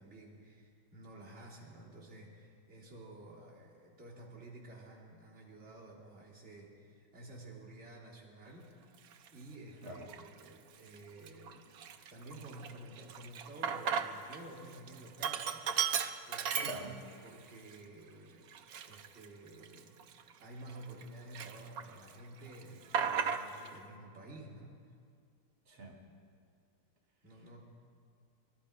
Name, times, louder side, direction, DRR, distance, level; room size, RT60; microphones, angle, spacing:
voice 1, 0.0-8.7 9.3-11.7 12.1-16.8 17.2-18.5 18.8-20.0 20.4-24.8 27.2-27.6, right 1 dB, 30° right, -7 dB, 3.4 m, -52 dB
Sink (filling or washing), 9.1-9.3 9.9-10.5 10.9-11.0 11.3-14.4 14.7-17.3 17.7-17.8 18.5-21.0 21.3-22.1 22.4-23.7, right 7 dB, 90° right, 0.8 m, -36 dB
voice 2, 16.6-17.0 25.7-26.0, right 1 dB, 65° right, 0 dB, 3.1 m, -44 dB
21.5 x 13.0 x 5.1 m, 2.2 s
omnidirectional pair, 2.4 m